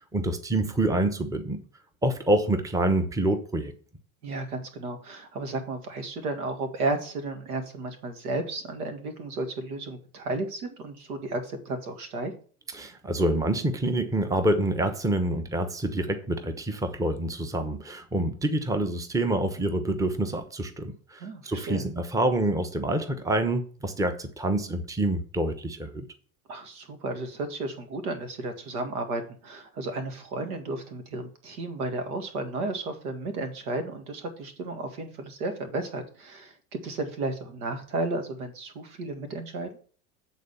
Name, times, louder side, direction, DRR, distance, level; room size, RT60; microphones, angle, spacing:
voice 1, 0.1-1.6 2.0-3.7 12.7-26.1, right 1 dB, 5° right, 0.9 m, -27 dB
voice 2, 4.2-12.3 21.2-21.8 26.5-39.7, right 2 dB, 80° right, 2.0 m, -33 dB
8.4 x 4.0 x 7.0 m
hypercardioid pair, 95°, 44 cm